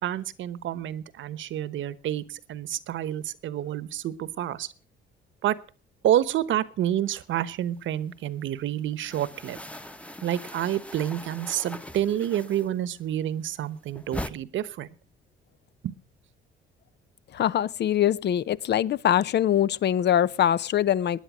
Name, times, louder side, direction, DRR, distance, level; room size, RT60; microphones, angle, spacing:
voice 1, 0.0-4.7 5.4-5.6 6.0-9.6 10.2-14.9 15.8-15.9, right 11 dB, 75° right, 1.1 m, -28 dB
sound 1, 7.3-8.3 8.6-13.0 13.3-14.3, left 1 dB, 5° left, 1.1 m, -40 dB
voice 2, 17.3-21.2, left 11 dB, 60° left, 0.7 m, -23 dB
20.0 x 10.0 x 6.2 m
cardioid pair, 90°, 20 cm